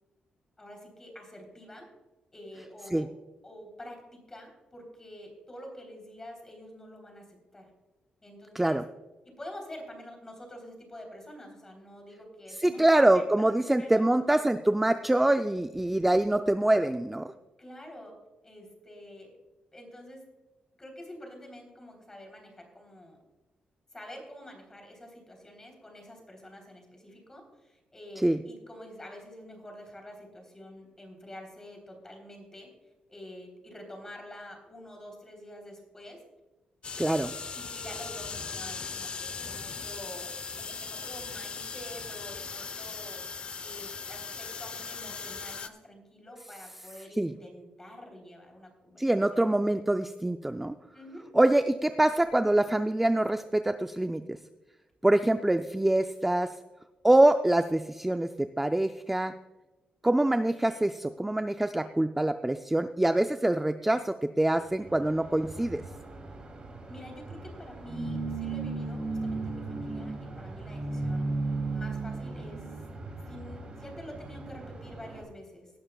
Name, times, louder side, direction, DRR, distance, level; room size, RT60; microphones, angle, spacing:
voice 1, 0.6-1.9 2.3-3.1 3.4-7.7 8.2-8.8 9.2-14.1 17.6-18.1 18.4-19.3 19.7-20.3 20.8-23.2 23.9-32.7 33.1-36.2 37.5-43.2 43.6-49.0 49.3-49.7 50.9-51.2 66.9-71.3 71.7-72.7 73.3-75.7, left 1 dB, 20° left, 2 dB, 3.3 m, -47 dB
voice 2, 12.6-17.3 28.2-28.4 37.0-37.3 47.2-47.3 49.0-50.8 51.3-54.4 55.0-56.5 57.0-59.3 60.0-65.8, right 1 dB, 5° right, 8 dB, 0.3 m, -25 dB
Cocote Minute, 36.8-45.7, left 5 dB, 40° left, 0.7 m, -39 dB
sound 1, 64.8-75.2, right 3 dB, 35° right, 2.7 m, -36 dB
18.0 x 11.5 x 2.3 m, 1.1 s
cardioid pair, 130°, 3 cm